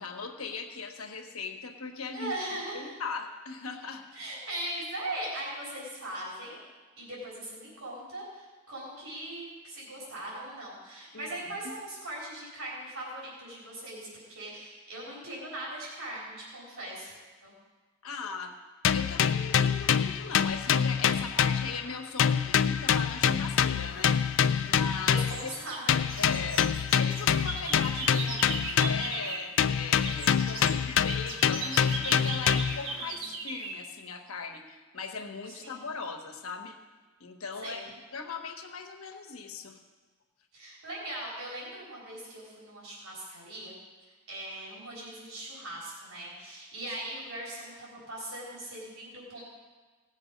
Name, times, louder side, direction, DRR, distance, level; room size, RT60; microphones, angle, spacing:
voice 1, 0.0-2.3 2.7-4.3 11.1-11.3 18.0-18.6 18.9-24.2 24.6-25.5 26.2-26.6 27.0-36.8 37.2-39.8, left 4 dB, 85° left, 4 dB, 1.2 m, -39 dB
voice 2, 2.1-3.0 4.1-6.6 7.0-17.2 17.4-17.5 25.0-26.1 32.3-32.9 35.5-35.8 37.6-37.9 40.5-43.7 44.3-49.4, right 1 dB, 90° right, -5 dB, 3.8 m, -40 dB
sound 1, 18.8-21.9 22.2-25.5 25.9-29.2 29.6-32.9, left 8 dB, 60° left, 0.4 m, -26 dB
sound 2, 23.9-24.7 25.0-29.6 29.8-33.8, right 4 dB, 70° right, 1.1 m, -39 dB
17.5 x 7.3 x 5.2 m, 1.3 s
head